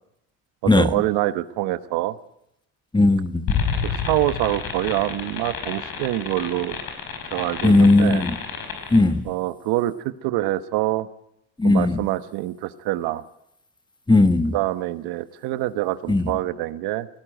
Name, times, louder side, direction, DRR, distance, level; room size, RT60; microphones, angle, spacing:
voice 1, 0.6-2.1 3.8-6.8 7.3-8.2 9.2-11.1 11.6-13.2 14.5-17.1, right 16 dB, 80° right, 1.1 m, -25 dB
voice 2, 2.9-3.6 7.6-8.4 8.9-9.2 11.6-12.0 14.1-14.5 16.1-16.3, left 2 dB, 10° left, 1.5 m, -17 dB
sound 1, 3.5-9.0, left 6 dB, 65° left, 5.3 m, -29 dB
19.5 x 17.5 x 9.1 m
supercardioid pair, 80°, 38 cm